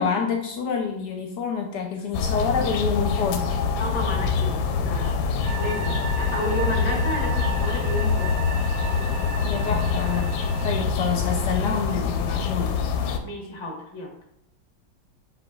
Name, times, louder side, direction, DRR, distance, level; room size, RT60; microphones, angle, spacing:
voice 1, 0.0-3.5 9.4-10.3 10.6-12.8, left 6 dB, 70° left, 2 dB, 1.1 m, -27 dB
sound 1, 2.1-13.2, left 5 dB, 90° left, 1.3 m, -25 dB
voice 2, 3.8-8.3 13.2-14.1, left 1 dB, 20° left, -1 dB, 0.8 m, -32 dB
sound 2, 5.4-10.9, right 5 dB, 60° right, 0.8 m, -35 dB
7.3 x 3.1 x 2.3 m, 0.78 s
omnidirectional pair, 2.0 m